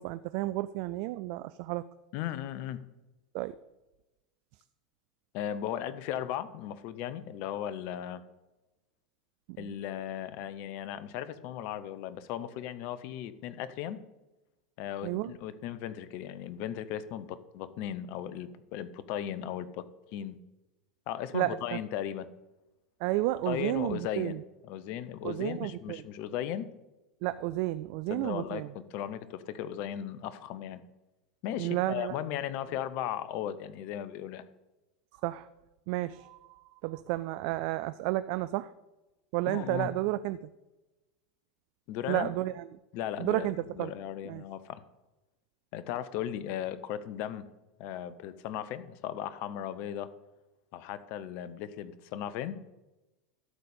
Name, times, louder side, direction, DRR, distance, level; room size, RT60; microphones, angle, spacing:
voice 1, 0.0-1.8 3.3-3.6 9.6-9.7 15.0-15.3 21.3-21.8 23.0-24.4 25.2-26.0 27.2-28.7 31.6-32.2 35.2-35.5 35.9-36.4 36.8-38.7 39.3-40.5 42.1-42.6 43.2-43.9 44.2-44.4, right 17 dB, 60° right, 14 dB, 0.4 m, -32 dB
voice 2, 2.1-2.8 5.3-8.2 9.6-14.0 14.8-19.9 20.1-20.4 21.1-22.3 23.4-24.4 24.7-26.7 28.1-30.8 31.4-34.4 39.5-39.9 41.9-42.3 42.9-44.8 45.7-47.5 47.8-50.1 50.7-52.6, left 10 dB, 55° left, 15 dB, 0.8 m, -36 dB
12.5 x 4.3 x 8.3 m, 1.0 s
hypercardioid pair, 90°, 4 cm